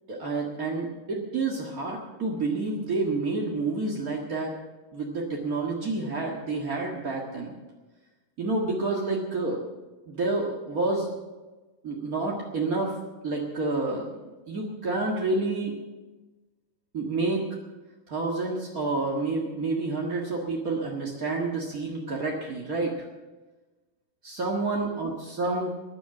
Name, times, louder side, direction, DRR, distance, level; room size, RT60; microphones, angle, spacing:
voice 1, 0.1-4.5 4.9-7.5 8.4-9.6 10.1-11.1 11.8-12.9 13.2-14.2 14.5-15.8 16.9-17.6 18.1-23.1 24.2-25.7, right 3 dB, 45° right, -2 dB, 1.1 m, -29 dB
13.5 x 10.5 x 7.7 m, 1.2 s
omnidirectional pair, 4.3 m